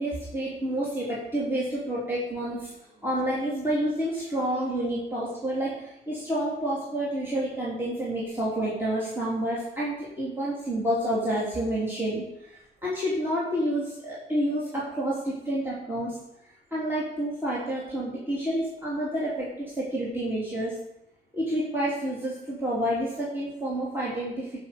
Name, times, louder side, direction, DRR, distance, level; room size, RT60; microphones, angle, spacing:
voice 1, 0.0-2.7 3.0-16.2 16.7-20.7 21.3-24.6, right 1 dB, 10° right, -7 dB, 3.4 m, -29 dB
14.0 x 6.1 x 5.3 m, 0.84 s
cardioid pair, 90°, 20 cm